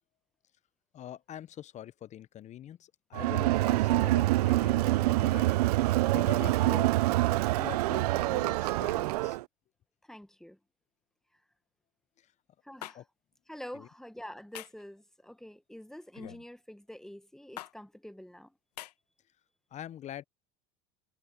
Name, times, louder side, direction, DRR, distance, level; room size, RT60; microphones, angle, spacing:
voice 1, 0.9-5.8 6.1-6.9 7.6-9.4 12.2-12.3 12.9-13.0 13.7-13.9 19.7-20.2, left 11 dB, 35° left, 0.8 m, -44 dB
Crowd, 3.1-9.4, right 18 dB, 80° right, 0.5 m, -26 dB
voice 2, 10.0-10.6 12.6-13.0 13.5-18.5, equal, ahead, 1.5 m, -46 dB
sound 1, 12.8-13.0 14.5-14.8 16.1-16.4 17.6-17.7 18.8-18.9, left 14 dB, 85° left, 1.5 m, -43 dB
hypercardioid pair, 95°, 20 cm